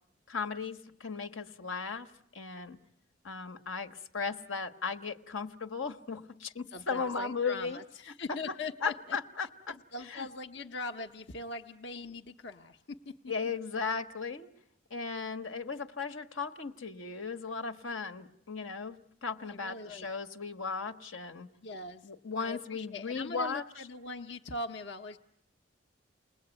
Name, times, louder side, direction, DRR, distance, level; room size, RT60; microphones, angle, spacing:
voice 1, 0.3-2.8 3.2-7.8 8.1-9.8 10.1-10.3 13.3-14.5 14.9-21.5 22.0-23.6, left 5 dB, 85° left, 7 dB, 1.4 m, -36 dB
voice 2, 6.7-9.2 9.9-13.1 19.4-20.1 21.6-22.1 22.4-25.2, left 3 dB, 70° left, 4 dB, 1.0 m, -41 dB
30.0 x 20.5 x 9.0 m, 0.79 s
head